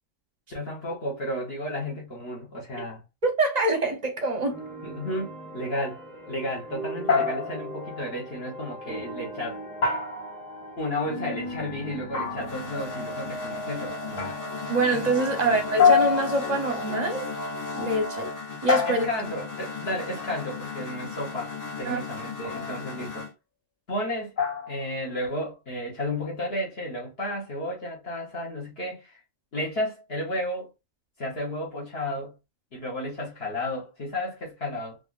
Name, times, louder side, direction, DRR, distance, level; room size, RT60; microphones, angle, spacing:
voice 1, 0.5-3.0 4.8-9.6 10.8-14.3 15.4-15.6 18.9-23.3 23.9-24.3 24.7-29.2 29.5-30.7 31.2-32.3 32.7-35.0, left 1 dB, 55° left, 1.1 m, -33 dB
voice 2, 3.2-4.6 14.7-17.3 17.7-18.3 18.6-19.0 21.9-22.0, right 2 dB, 40° right, 0.7 m, -25 dB
sound 1, 4.4-15.7, right 1 dB, 10° right, 0.9 m, -39 dB
sound 2, 7.1-7.8 9.8-10.7 12.1-12.7 14.2-14.6 15.8-16.7 18.7-19.5 22.4-22.8 24.4-24.9, left 6 dB, 75° left, 1.8 m, -25 dB
sound 3, 12.2-23.3, left 3 dB, 20° left, 0.6 m, -35 dB
3.3 x 2.4 x 2.4 m
omnidirectional pair, 1.3 m